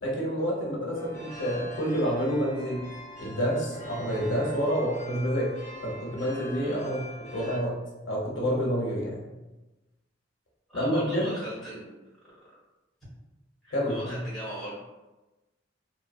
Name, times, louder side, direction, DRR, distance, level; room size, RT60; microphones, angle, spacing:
voice 1, 0.0-2.8 3.2-5.5 5.8-7.0 7.3-7.7 8.1-9.2 10.7-11.3 13.7-14.2, equal, 90° left, -3 dB, 0.8 m, -28 dB
sound 1, 0.9-7.6, equal, 40° left, 0.6 m, -44 dB
voice 2, 10.7-11.9 13.6-14.8, right 1 dB, ahead, -10 dB, 1.2 m, -39 dB
2.7 x 2.0 x 2.5 m, 1.1 s
head